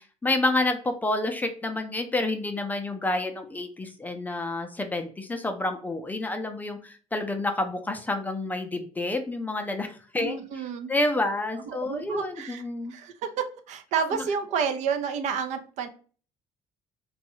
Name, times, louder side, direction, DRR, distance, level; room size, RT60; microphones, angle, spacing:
voice 1, 0.0-10.4 10.9-12.9 14.1-14.2, left 2 dB, 15° left, 6 dB, 0.4 m, -29 dB
voice 2, 10.2-10.9 11.7-12.6 12.9-15.9, right 6 dB, 70° right, 8 dB, 0.5 m, -30 dB
3.0 x 2.3 x 2.9 m, 0.40 s
cardioid pair, 120°, 13 cm